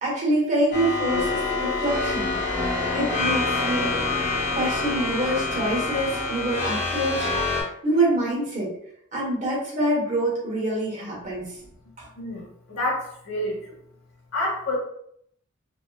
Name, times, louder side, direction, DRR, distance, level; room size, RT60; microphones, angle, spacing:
voice 1, 0.0-2.4 2.9-4.0 4.5-8.7 9.1-11.6 12.0-12.1, right 1 dB, 35° right, -6 dB, 1.1 m, -26 dB
sound 1, 0.7-7.6, left 3 dB, 30° left, 0.8 m, -26 dB
voice 2, 12.2-13.8 14.3-14.8, left 1 dB, 85° left, -3 dB, 1.0 m, -29 dB
3.4 x 2.1 x 2.3 m, 0.69 s
head